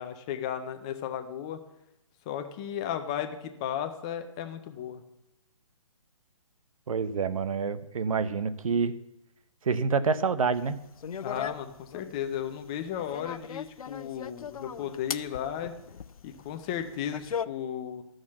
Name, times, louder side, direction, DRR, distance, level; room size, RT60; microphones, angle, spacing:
voice 1, 0.0-1.6 2.3-5.0 11.2-15.7 16.2-18.0, left 9 dB, 10° left, 7 dB, 0.3 m, -35 dB
voice 2, 6.9-8.9 9.6-10.8, right 5 dB, 75° right, 14 dB, 0.8 m, -27 dB
sound 1, 10.5-17.5, left 7 dB, 80° left, 0.6 m, -39 dB
13.0 x 6.5 x 7.2 m, 0.87 s
hypercardioid pair, 155°, 18 cm